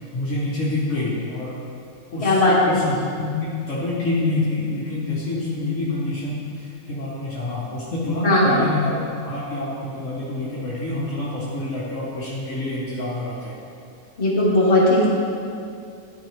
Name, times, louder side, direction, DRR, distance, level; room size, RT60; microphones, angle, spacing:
voice 1, 0.0-1.5 2.1-13.5, left 2 dB, 75° left, -7 dB, 1.6 m, -27 dB
voice 2, 2.2-2.8 8.2-8.5 14.2-15.1, left 1 dB, 55° left, -6 dB, 1.8 m, -17 dB
12.0 x 4.7 x 3.4 m, 2.5 s
omnidirectional pair, 1.3 m